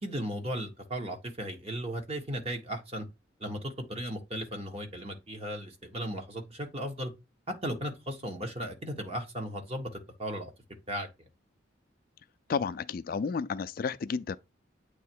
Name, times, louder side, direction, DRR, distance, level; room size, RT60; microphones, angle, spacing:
voice 1, 0.0-3.0 3.4-7.1 7.5-9.9 10.2-10.5 10.9-11.1, equal, 30° right, 1.3 m, -36 dB
voice 2, 12.5-14.4, left 5 dB, 45° left, 0.3 m, -31 dB
8.3 x 3.1 x 4.6 m
head